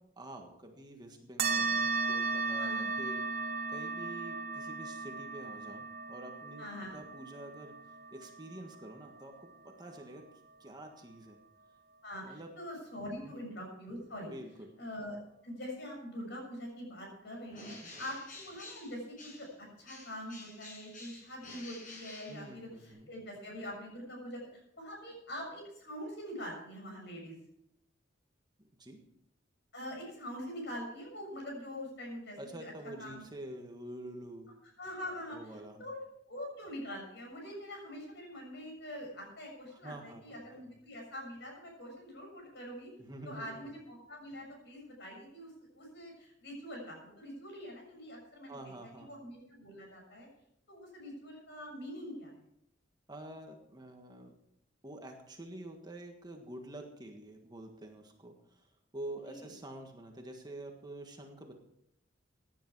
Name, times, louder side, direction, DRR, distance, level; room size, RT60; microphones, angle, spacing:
voice 1, 0.2-7.7 8.1-9.5 9.8-10.2 10.6-11.4 12.2-12.5 13.2-13.4 14.3-14.7 17.6-17.9 22.3-23.1 28.8-29.0 32.4-34.5 35.3-35.8 39.7-40.2 40.5-40.7 43.1-43.6 48.5-49.1 53.1-54.3 54.8-61.5, right 1 dB, 20° right, 3 dB, 1.6 m, -47 dB
sound 1, 1.4-10.3, right 4 dB, 55° right, 2.2 m, -36 dB
voice 2, 6.6-6.9 12.0-14.3 14.8-15.2 15.4-27.4 29.7-32.7 33.0-33.2 34.8-35.4 35.8-36.0 36.3-42.9 43.2-48.7 49.0-50.3 50.7-52.3 59.2-59.5, equal, 65° left, 1 dB, 6.8 m, -44 dB
Bird, 17.5-19.6 19.9-22.9, left 2 dB, 45° left, 6.2 m, -50 dB
16.5 x 10.5 x 4.7 m, 0.75 s
head